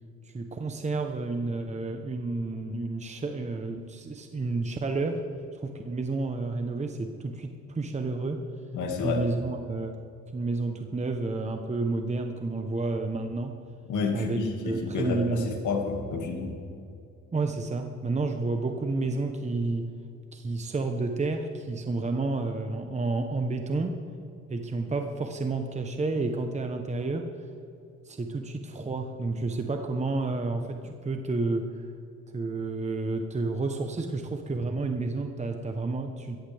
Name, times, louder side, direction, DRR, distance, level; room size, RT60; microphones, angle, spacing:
voice 1, 0.2-5.2 5.5-8.4 9.0-9.9 10.3-13.5 14.1-15.5 17.3-19.8 20.3-23.9 24.5-27.5 28.0-31.9 32.3-36.4, right 3 dB, 25° right, 5 dB, 1.0 m, -30 dB
voice 2, 8.7-9.2 13.9-16.6, left 4 dB, 80° left, 3 dB, 2.2 m, -30 dB
17.0 x 14.0 x 3.5 m, 2.6 s
cardioid pair, 90°, 30 cm